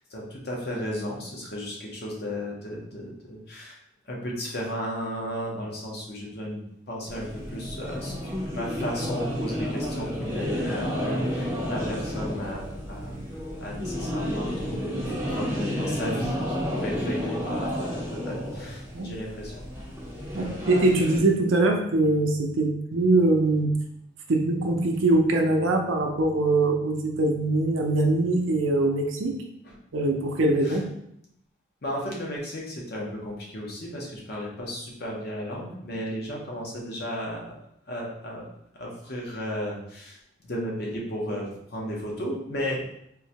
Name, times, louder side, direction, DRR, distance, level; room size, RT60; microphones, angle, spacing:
voice 1, 0.1-3.8 4.0-13.2 13.6-19.6 20.3-20.4 29.6-29.7 30.6-30.8 31.8-37.5 37.9-38.4 38.7-40.2 40.4-42.8, equal, 50° left, -2 dB, 0.7 m, -34 dB
sound 1, 7.1-21.2, equal, 15° right, 0.5 m, -31 dB
voice 2, 20.3-23.7 24.3-29.4 29.9-30.8, right 2 dB, 75° right, 2 dB, 0.5 m, -23 dB
3.7 x 2.2 x 2.8 m, 0.73 s
head